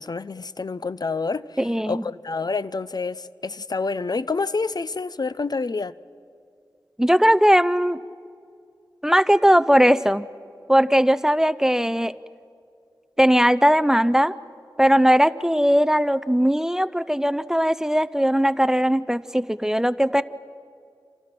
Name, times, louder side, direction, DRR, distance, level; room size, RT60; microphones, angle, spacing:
voice 1, 0.0-5.9, left 4 dB, 55° left, 16 dB, 0.5 m, -28 dB
voice 2, 1.6-2.0 7.0-8.0 9.0-10.3 10.7-12.2 13.2-14.4 14.8-20.2, equal, 5° right, 13 dB, 0.5 m, -19 dB
28.0 x 27.5 x 6.0 m, 2.4 s
wide cardioid pair, 75°, 8 cm